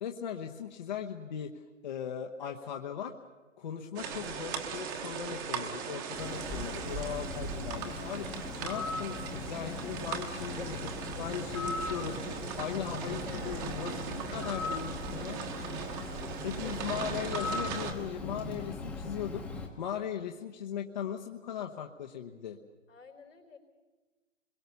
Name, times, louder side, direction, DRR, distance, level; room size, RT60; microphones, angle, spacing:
voice 1, 0.0-1.5 1.8-3.1 3.6-15.4 16.4-19.4 19.8-22.6, left 8 dB, 35° left, 3 dB, 1.1 m, -38 dB
voice 2, 2.4-2.7 10.6-10.7 13.2-13.7 15.9-16.9 22.9-23.6, left 5 dB, 80° left, 4 dB, 4.7 m, -50 dB
sound 1, 4.0-17.9, right 6 dB, 15° right, 1.3 m, -39 dB
Bird, 6.1-19.7, left 3 dB, 5° left, 1.1 m, -39 dB
26.0 x 22.0 x 7.0 m, 1.2 s
hypercardioid pair, 155°, 37 cm